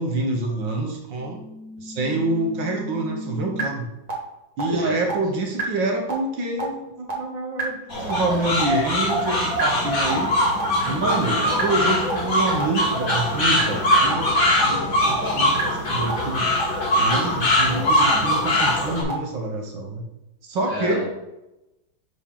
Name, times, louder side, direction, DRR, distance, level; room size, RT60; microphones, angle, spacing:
voice 1, 0.0-1.4 1.8-3.9 4.6-10.3 10.9-16.5 17.0-20.0 20.4-21.1, right 2 dB, 70° right, 2 dB, 1.7 m, -27 dB
sound 1, 1.2-3.6 4.1-4.2 4.6-4.7 5.1-5.2 5.6-5.7 6.1-6.2 6.6-6.7 7.1-7.2 7.6-7.7 8.1-8.2 8.6-8.7 9.1-9.2 9.6-9.7 10.1-10.2 10.6-10.7 11.1-11.2 11.6-11.7 12.1-12.2 12.6-12.7 13.1-13.2 13.6-13.7 14.1-14.2 14.6-14.7 15.1-15.2 15.6-15.7 16.1-16.2 16.6-16.7 17.1-17.2 17.6-17.7 18.1-18.2 18.6-18.7 19.1-19.2, right 4 dB, 45° right, 1.9 m, -31 dB
voice 2, 4.6-5.0 11.3-11.7 20.7-21.1, equal, 15° left, -7 dB, 2.7 m, -31 dB
sound 2, 7.9-19.0, left 1 dB, 90° left, 2.6 m, -22 dB
6.6 x 5.9 x 3.8 m, 0.93 s
omnidirectional pair, 2.0 m